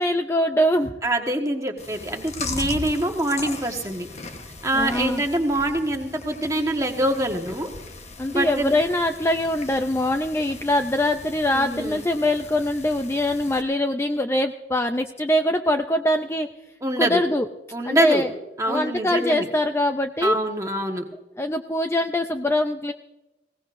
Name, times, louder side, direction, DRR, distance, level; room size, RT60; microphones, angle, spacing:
voice 1, 0.0-0.9 4.7-5.2 8.2-16.5 17.0-17.5 17.8-18.3 18.7-20.4 21.4-22.9, left 1 dB, 15° left, 7 dB, 0.4 m, -23 dB
voice 2, 1.0-4.1 4.6-7.7 8.3-8.7 11.5-12.1 16.8-17.2 17.7-18.3 18.6-19.5 20.2-21.0, right 1 dB, 20° right, 3 dB, 1.4 m, -25 dB
Chewing mastication, 1.8-13.6, left 3 dB, 40° left, 1.2 m, -38 dB
20.0 x 17.5 x 2.6 m, 1.0 s
head